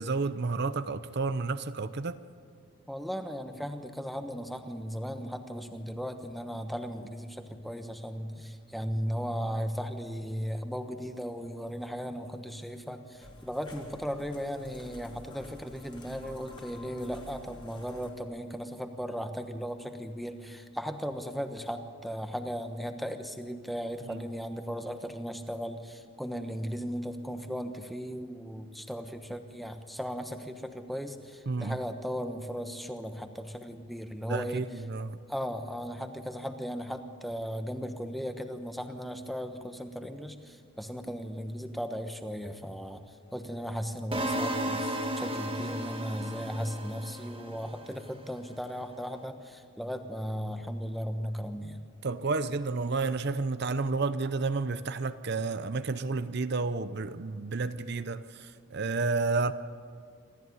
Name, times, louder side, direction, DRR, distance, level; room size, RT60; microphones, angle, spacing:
voice 1, 0.0-2.2 24.1-24.2 31.5-31.8 34.3-35.2 52.0-59.5, right 3 dB, 50° right, 0.6 m, -31 dB
voice 2, 2.9-34.6 35.3-43.0 43.3-51.8, equal, ahead, 1.1 m, -36 dB
sound 1, 13.2-18.1, equal, 20° left, 3.0 m, -49 dB
sound 2, 44.1-48.2, right 1 dB, 25° right, 2.1 m, -34 dB
26.5 x 13.5 x 9.5 m
head